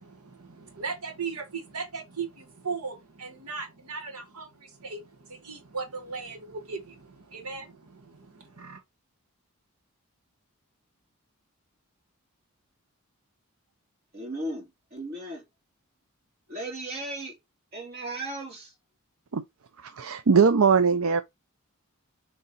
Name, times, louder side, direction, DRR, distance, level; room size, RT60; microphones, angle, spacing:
voice 1, 0.0-8.8, right 4 dB, 90° right, 1.6 m, -38 dB
voice 2, 14.1-15.4 16.5-17.4 17.7-18.7, right 1 dB, 45° right, 3.1 m, -36 dB
voice 3, 19.8-21.2, right 5 dB, 70° right, 0.5 m, -21 dB
6.9 x 3.4 x 4.2 m
head